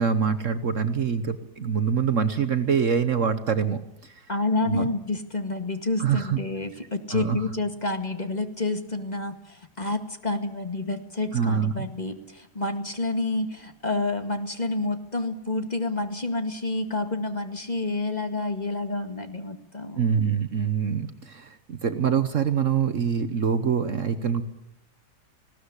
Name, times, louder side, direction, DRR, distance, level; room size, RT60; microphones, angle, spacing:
voice 1, 0.0-4.1 4.6-4.9 6.0-6.4 7.1-7.4 11.3-11.9 20.0-24.4, right 7 dB, 55° right, 11 dB, 1.3 m, -25 dB
voice 2, 4.3-20.0, left 2 dB, 25° left, 7 dB, 2.0 m, -29 dB
20.0 x 17.0 x 9.8 m, 0.85 s
omnidirectional pair, 1.7 m